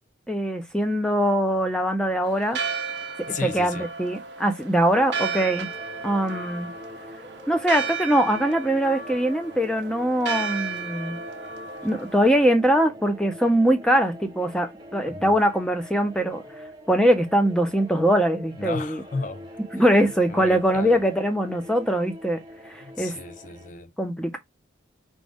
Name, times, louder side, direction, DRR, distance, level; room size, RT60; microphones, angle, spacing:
voice 1, 0.3-2.6 3.4-5.7 6.0-6.7 7.5-11.2 11.8-16.4 16.9-19.0 19.7-22.4 22.7-23.2 24.0-24.4, equal, 5° left, 0.7 m, -22 dB
Church bell, 2.2-12.4, right 5 dB, 60° right, 0.7 m, -34 dB
voice 2, 3.3-3.9 11.8-11.9 15.0-15.4 18.6-19.5 20.3-21.0 22.8-23.9, left 4 dB, 40° left, 0.5 m, -34 dB
sound 1, 4.9-23.7, left 1 dB, 20° right, 1.1 m, -44 dB
5.2 x 2.2 x 3.5 m
head